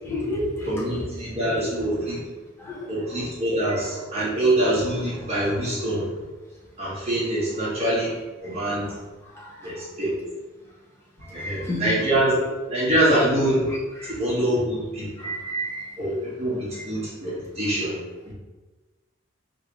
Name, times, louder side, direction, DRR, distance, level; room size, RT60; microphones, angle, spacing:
voice 1, 0.0-0.9 2.6-2.9 3.5-3.6 9.3-9.5 11.3-12.0 14.0-14.1 15.2-15.9, equal, 10° left, -5 dB, 0.9 m, -30 dB
voice 2, 0.6-2.3 2.9-6.1 6.8-8.1 8.4-8.9 9.6-10.1 11.3-12.4 12.7-13.7 14.0-15.3 16.0-18.0 18.3-18.4, right 1 dB, 30° right, -8 dB, 1.5 m, -24 dB
3.4 x 2.7 x 4.5 m, 1.2 s
head